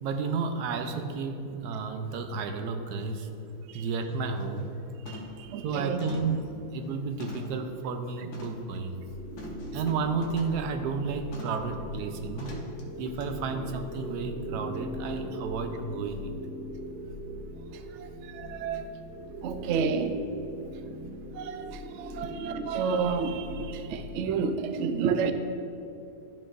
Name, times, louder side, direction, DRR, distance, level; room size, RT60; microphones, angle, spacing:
voice 1, 0.0-3.3 3.7-4.8 5.6-9.0 9.7-12.6 13.0-16.3 17.7-18.0, right 4 dB, 90° right, 6 dB, 1.2 m, -32 dB
sound 1, 3.8-4.0 4.4-4.7 5.1-5.5 6.0-7.7 8.3-8.7 9.4-10.6 11.3-11.7 12.4-12.8 13.2-13.3, left 2 dB, 75° left, 1.6 m, -44 dB
voice 2, 5.5-6.0 18.3-18.8 19.4-20.2 21.4-21.6 21.9-25.3, right 6 dB, 70° right, 8 dB, 0.7 m, -29 dB
sound 2, 9.0-24.3, equal, 45° left, 2.0 m, -40 dB
12.5 x 5.2 x 2.5 m, 2.8 s
omnidirectional pair, 1.7 m